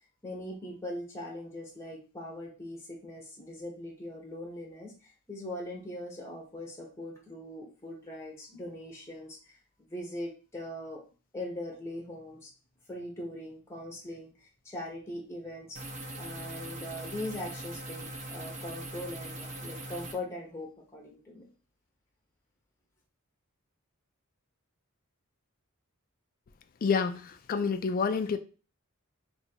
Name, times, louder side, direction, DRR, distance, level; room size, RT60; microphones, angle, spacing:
voice 1, 0.2-4.9 5.3-9.6 9.9-11.0 11.3-12.5 12.9-15.8 16.2-21.4, left 1 dB, 10° left, 0.8 m, -41 dB
sound 1, 15.8-20.1, right 1 dB, 35° right, 0.7 m, -41 dB
voice 2, 26.8-27.2 27.5-28.4, left 5 dB, 40° left, 0.3 m, -27 dB
2.7 x 2.6 x 4.2 m
head